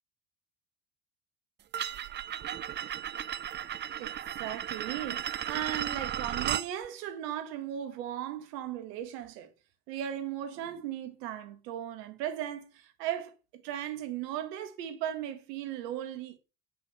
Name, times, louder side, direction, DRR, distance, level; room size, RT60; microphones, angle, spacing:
sound 1, 1.7-6.7, right 10 dB, 25° right, 0.5 m, -35 dB
voice 1, 4.0-9.5 9.9-16.4, right 11 dB, 75° right, 1.9 m, -37 dB
8.3 x 7.1 x 5.6 m
hypercardioid pair, 85°, 50 cm